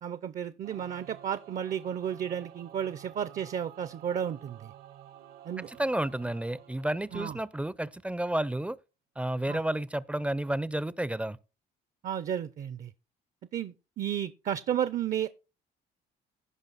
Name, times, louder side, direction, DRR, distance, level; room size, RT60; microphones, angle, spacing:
voice 1, 0.0-4.7 5.4-5.7 7.1-7.4 9.5-9.6 12.0-12.9 13.5-15.3, right 9 dB, 50° right, 0.6 m, -33 dB
Singing / Musical instrument, 0.6-8.1, right 11 dB, 65° right, 1.1 m, -52 dB
voice 2, 5.7-8.8 9.2-11.4, right 1 dB, 5° right, 0.5 m, -31 dB
16.5 x 5.5 x 4.0 m
cardioid pair, 110°, 17 cm